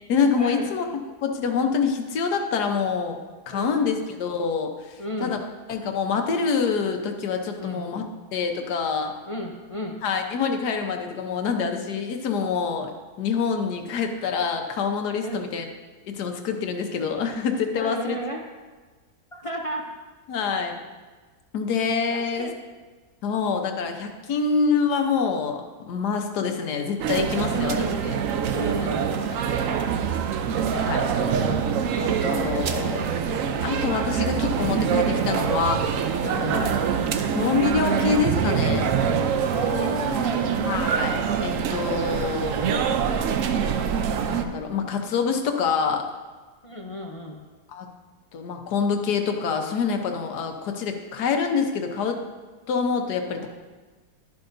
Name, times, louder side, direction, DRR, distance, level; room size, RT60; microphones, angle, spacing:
voice 1, 0.1-0.9 1.2-3.2 3.5-5.4 5.7-8.0 8.3-9.1 10.0-15.6 16.0-18.2 20.3-20.8 21.5-22.5 23.2-25.6 25.9-28.2 30.7-31.0 31.9-33.2 33.6-35.9 36.2-36.7 37.3-38.9 40.6-42.8 44.1-46.0 47.7-47.9 48.3-52.2 52.7-53.5, left 5 dB, 75° left, 4 dB, 1.5 m, -26 dB
voice 2, 5.0-5.4 7.6-7.8 9.3-10.0 15.2-15.4 17.8-18.4 19.3-19.8 22.1-22.5 26.6-26.7 27.5-28.0 28.5-29.8 36.6-36.8 39.5-40.6 46.6-47.4 53.4-53.5, equal, 50° left, 0 dB, 0.4 m, -33 dB
sound 1, 27.0-44.5, right 7 dB, 65° right, 0.9 m, -25 dB
12.0 x 11.0 x 2.6 m, 1.3 s
omnidirectional pair, 1.7 m